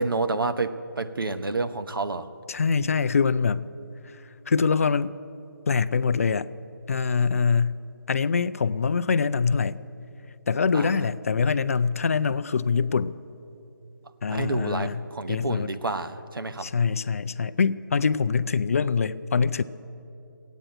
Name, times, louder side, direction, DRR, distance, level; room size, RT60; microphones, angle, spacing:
voice 1, 0.0-2.3 10.7-10.9 14.3-16.7, right 3 dB, 85° right, 10 dB, 0.9 m, -29 dB
voice 2, 2.5-3.6 4.5-5.1 5.7-6.5 6.9-7.8 8.1-9.8 10.5-13.1 14.2-15.0 15.3-15.7 16.6-19.6, left 5 dB, 40° left, 14 dB, 0.4 m, -24 dB
14.5 x 9.1 x 9.0 m, 2.8 s
figure-of-eight pair, 160°, 11 cm